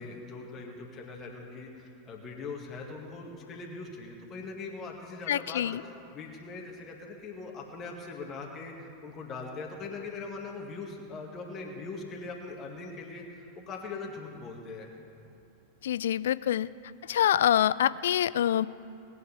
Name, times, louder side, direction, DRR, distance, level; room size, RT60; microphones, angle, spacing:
voice 1, 0.0-14.9, left 3 dB, 30° left, 0 dB, 2.0 m, -41 dB
voice 2, 5.3-5.8 15.8-16.7 17.0-18.7, left 11 dB, 60° left, 18 dB, 0.3 m, -25 dB
19.5 x 7.8 x 8.2 m, 2.8 s
figure-of-eight pair, 90°, 0 cm